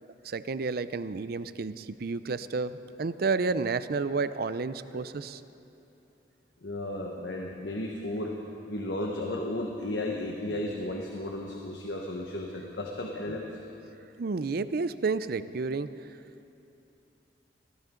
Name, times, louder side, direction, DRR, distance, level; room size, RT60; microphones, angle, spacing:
voice 1, 0.2-5.4 14.2-15.9, right 4 dB, 60° right, 14 dB, 0.5 m, -31 dB
voice 2, 6.6-8.4 8.7-13.6, left 1 dB, 85° left, 0 dB, 1.3 m, -34 dB
23.0 x 16.0 x 3.8 m, 2.9 s
head